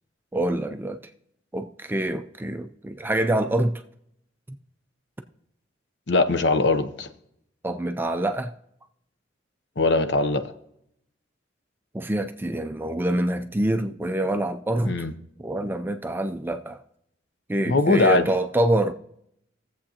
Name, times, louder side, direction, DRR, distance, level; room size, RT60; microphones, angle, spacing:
voice 1, 0.3-1.0 1.5-3.8 4.5-4.6 7.6-8.5 11.9-15.1 15.4-16.8 17.5-18.9, right 1 dB, 10° right, 0.3 m, -26 dB
voice 2, 6.1-7.1 9.8-10.4 14.9-15.1 17.7-18.3, left 3 dB, 65° left, 0.7 m, -21 dB
20.0 x 7.6 x 2.8 m
head